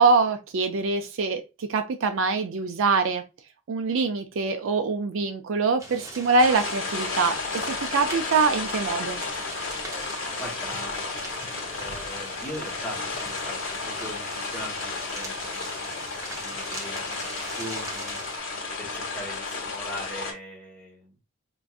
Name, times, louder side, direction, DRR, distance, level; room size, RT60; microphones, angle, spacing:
voice 1, 0.0-3.2 3.7-9.2, right 4 dB, 60° right, 7 dB, 0.4 m, -24 dB
sound 1, 5.8-18.4, right 1 dB, 15° right, 0.7 m, -41 dB
sound 2, 6.4-20.3, left 3 dB, 60° left, 1.1 m, -33 dB
voice 2, 10.3-11.1 11.7-16.0 16.3-18.2 18.8-21.2, equal, 5° left, -4 dB, 1.2 m, -40 dB
4.5 x 2.6 x 2.3 m, 0.27 s
head